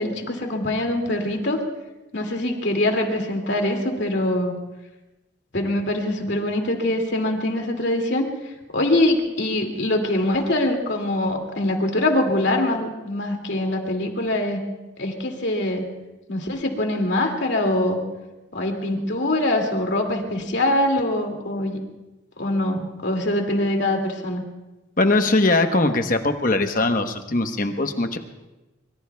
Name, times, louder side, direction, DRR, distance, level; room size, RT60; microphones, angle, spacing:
voice 1, 0.0-1.6 2.1-4.5 5.5-14.6 15.0-15.8 16.3-18.0 18.5-21.8 22.4-24.4, left 1 dB, 65° left, 2 dB, 2.4 m, -23 dB
voice 2, 25.0-28.2, left 2 dB, 45° left, 6 dB, 1.0 m, -21 dB
25.0 x 23.0 x 2.3 m, 1.1 s
head